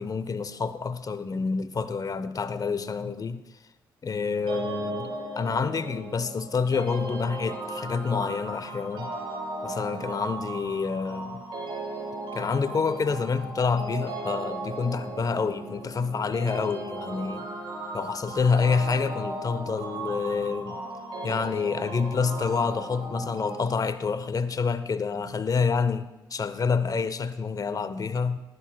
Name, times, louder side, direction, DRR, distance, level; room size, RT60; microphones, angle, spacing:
voice 1, 0.0-3.4 4.0-9.1 9.6-11.4 12.3-17.5 17.9-20.8 21.2-28.4, left 5 dB, 35° left, 0.8 m, -28 dB
sound 1, 4.5-23.7, right 2 dB, 50° right, 4.7 m, -36 dB
19.0 x 11.0 x 2.3 m
hypercardioid pair, 40°, 10 cm